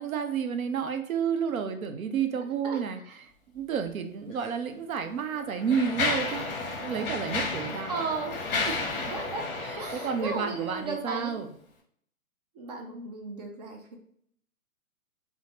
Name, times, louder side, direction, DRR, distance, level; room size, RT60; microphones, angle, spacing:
voice 1, 0.0-6.5 6.8-7.9 8.6-9.0 9.6-11.5, right 7 dB, 70° right, 7 dB, 0.6 m, -31 dB
Mechanisms, 4.3-4.5 5.2-11.0, left 3 dB, 40° left, 0.8 m, -32 dB
voice 2, 7.9-8.5 9.1-9.5 9.8-11.4 12.5-14.0, right 4 dB, 30° right, 2 dB, 0.5 m, -35 dB
3.1 x 2.0 x 2.8 m, 0.64 s
hypercardioid pair, 135°, 43 cm